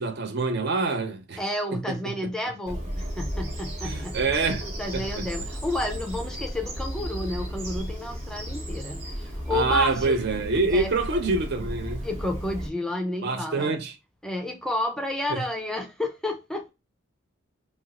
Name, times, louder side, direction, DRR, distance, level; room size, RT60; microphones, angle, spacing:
voice 1, 0.0-1.4 1.7-2.0 3.8-5.2 9.5-12.0 13.2-13.9 15.3-15.4, right 3 dB, 50° right, 0.5 m, -26 dB
voice 2, 1.4-4.5 4.8-10.2 10.7-10.9 12.0-13.7 14.2-16.7, left 1 dB, 5° left, 0.4 m, -31 dB
Bird vocalization bird call bird song, 2.7-12.7, equal, 30° right, 0.8 m, -34 dB
2.7 x 2.5 x 2.9 m
head